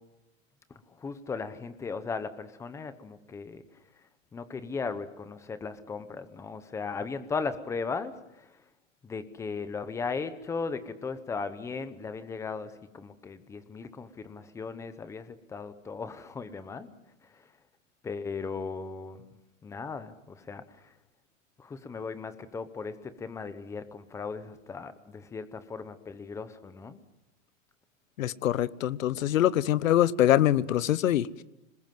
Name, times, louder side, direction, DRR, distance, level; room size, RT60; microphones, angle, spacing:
voice 1, 0.7-3.6 4.3-8.5 9.0-16.9 18.0-19.2 19.6-20.6 21.6-27.0, left 4 dB, 5° left, 12 dB, 0.8 m, -37 dB
voice 2, 28.2-31.4, left 12 dB, 85° left, 18 dB, 1.1 m, -24 dB
26.5 x 21.0 x 7.7 m, 0.91 s
supercardioid pair, 165°, 39 cm